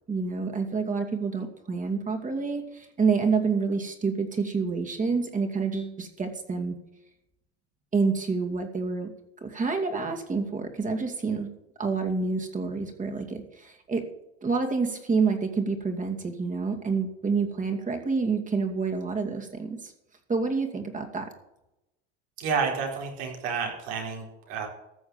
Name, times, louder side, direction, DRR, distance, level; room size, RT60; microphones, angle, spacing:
voice 1, 0.1-6.8 7.9-9.1 9.4-11.5 11.8-14.1 14.4-19.9 20.3-21.3, right 4 dB, 25° right, 4 dB, 2.5 m, -28 dB
voice 2, 22.4-24.7, right 5 dB, 75° right, 1 dB, 4.4 m, -30 dB
14.0 x 7.1 x 7.1 m, 0.89 s
supercardioid pair, 95°, 32 cm